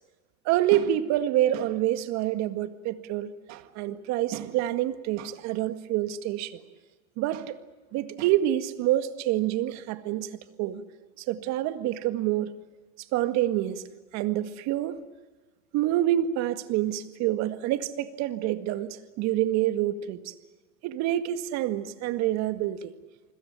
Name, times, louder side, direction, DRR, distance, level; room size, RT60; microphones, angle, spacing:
voice 1, 0.5-6.5 7.2-7.5 7.9-10.8 11.3-12.5 13.1-13.8 14.1-15.0 15.7-20.2 20.8-22.9, right 13 dB, 45° right, 10 dB, 1.9 m, -27 dB
28.5 x 21.5 x 6.9 m, 1.3 s
hypercardioid pair, 115°, 38 cm